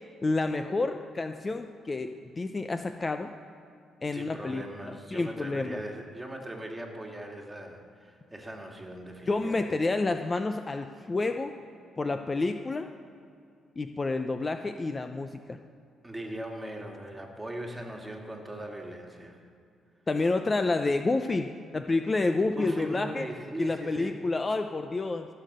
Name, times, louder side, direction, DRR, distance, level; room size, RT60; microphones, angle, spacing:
voice 1, 0.2-3.3 4.0-5.8 9.3-11.5 12.0-12.9 13.8-15.6 20.1-23.3 23.6-25.3, left 3 dB, 25° left, 7 dB, 0.5 m, -29 dB
voice 2, 4.1-9.7 16.0-19.4 22.5-24.2, right 1 dB, 10° right, 1 dB, 1.9 m, -40 dB
15.0 x 6.7 x 6.6 m, 2.4 s
cardioid pair, 90°, 0 cm